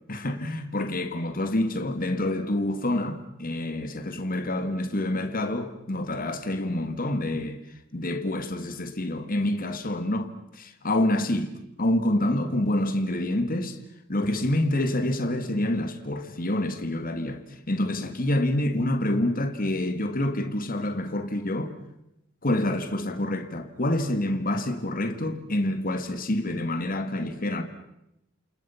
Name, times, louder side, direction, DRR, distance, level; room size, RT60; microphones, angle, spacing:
voice 1, 0.1-7.6 7.9-11.5 11.8-13.8 14.1-17.4 17.7-21.7 22.4-27.6, left 1 dB, 45° left, 2.2 m, -27 dB
29.5 x 27.5 x 5.9 m
head